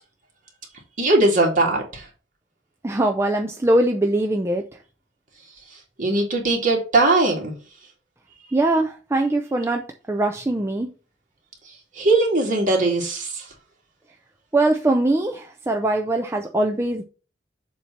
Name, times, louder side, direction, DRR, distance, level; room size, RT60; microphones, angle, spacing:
voice 1, 1.0-2.1 6.0-7.5 12.0-13.4, right 2 dB, 45° right, 2.2 m, -20 dB
voice 2, 2.8-4.6 8.5-10.9 14.5-17.0, right 2 dB, 15° right, 0.5 m, -22 dB
7.3 x 2.9 x 6.0 m
head